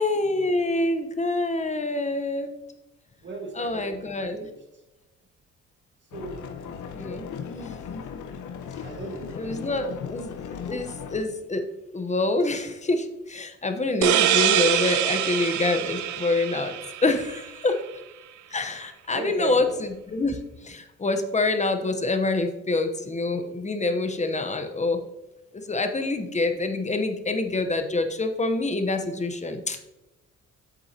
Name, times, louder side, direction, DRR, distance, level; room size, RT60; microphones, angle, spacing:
voice 1, 0.0-2.6 3.6-4.4 6.9-7.8 9.4-11.6 11.9-16.7 17.0-17.8 18.5-25.0 25.5-29.8, left 2 dB, 25° left, 7 dB, 1.0 m, -26 dB
voice 2, 3.2-4.6 6.1-7.0 8.8-10.1 19.1-19.8, right 3 dB, 40° right, 2 dB, 1.8 m, -37 dB
sound 1, 6.1-11.2, left 7 dB, 75° left, 0.9 m, -37 dB
sound 2, 14.0-17.5, right 10 dB, 75° right, 0.6 m, -24 dB
8.0 x 7.7 x 2.9 m, 0.96 s
cardioid pair, 90°, 30 cm